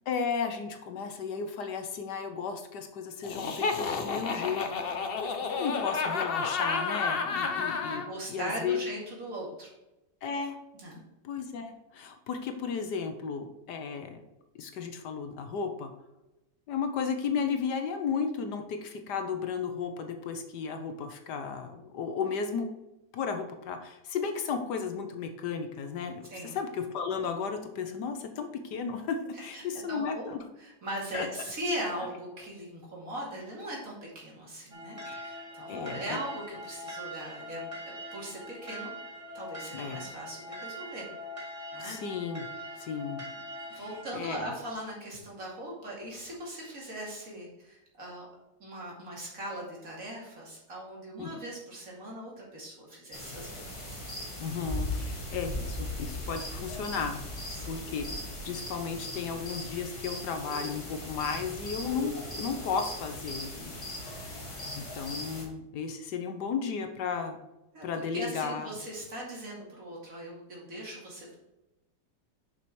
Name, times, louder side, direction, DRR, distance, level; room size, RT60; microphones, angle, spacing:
voice 1, 0.1-8.0 8.3-8.8 10.2-10.6 11.2-14.2 14.5-15.9 16.7-22.7 23.1-26.3 26.5-30.4 31.1-31.3 35.0-35.4 35.7-36.2 39.7-40.0 41.8-42.5 42.8-43.2 43.7-43.8 44.1-44.5 51.2-51.3 54.4-57.2 57.6-58.1 58.4-63.7 64.0-64.4 64.8-67.4 67.8-68.7, left 6 dB, 70° left, 6 dB, 1.4 m, -34 dB
Laughter, 3.2-8.1, left 5 dB, 50° left, 0.7 m, -31 dB
voice 2, 7.9-9.7 10.7-11.0 26.3-26.6 29.5-29.6 29.9-30.3 30.6-37.6 38.1-38.9 39.3-41.1 41.7-42.0 43.7-48.3 48.6-53.5 53.9-54.0 57.5-57.9 67.7-71.4, right 1 dB, 50° right, -3 dB, 2.9 m, -39 dB
sound 1, 34.7-44.1, equal, 20° right, 1.5 m, -42 dB
sound 2, 53.1-65.4, left 1 dB, 20° left, 1.7 m, -38 dB
6.9 x 5.8 x 4.7 m, 0.95 s
omnidirectional pair, 1.9 m